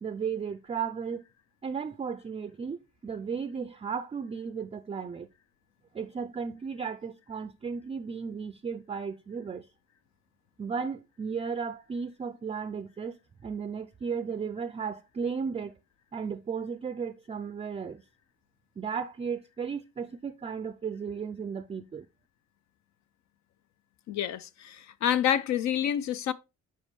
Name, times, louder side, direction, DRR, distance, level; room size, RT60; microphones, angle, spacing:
voice 1, 0.0-1.2 1.6-5.3 5.9-9.7 10.6-15.7 16.1-18.0 18.8-22.1, right 6 dB, 20° right, 0.4 m, -35 dB
voice 2, 24.1-26.3, left 10 dB, 65° left, 0.5 m, -28 dB
7.3 x 4.5 x 3.1 m
cardioid pair, 90°, 30 cm